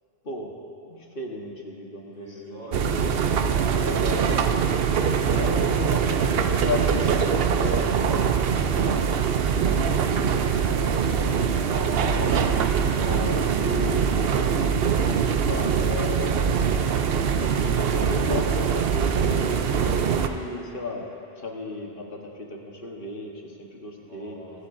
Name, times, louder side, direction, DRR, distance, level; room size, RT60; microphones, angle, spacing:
voice 1, 0.9-3.2 3.7-4.8 5.3-11.1 11.6-14.8 15.1-16.4 17.4-21.1 21.4-24.4, left 2 dB, 60° left, 0 dB, 1.5 m, -35 dB
voice 2, 2.0-4.1 24.0-24.7, right 1 dB, 85° right, -7 dB, 3.7 m, -46 dB
sound 1, 2.7-20.3, right 7 dB, 70° right, 0.8 m, -23 dB
25.0 x 11.5 x 2.7 m, 2.8 s
omnidirectional pair, 1.1 m